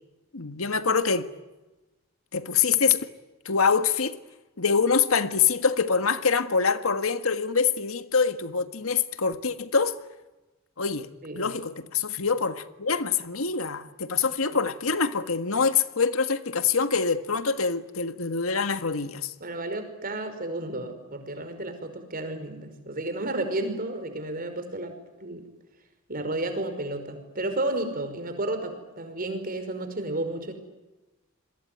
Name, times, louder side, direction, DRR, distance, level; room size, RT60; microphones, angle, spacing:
voice 1, 0.3-1.3 2.3-3.1 3.4-4.1 4.6-10.0 10.8-19.3, left 5 dB, 85° left, 1.6 m, -25 dB
voice 2, 19.4-25.5 26.1-30.5, right 2 dB, 45° right, 5.3 m, -32 dB
27.5 x 22.0 x 9.3 m
head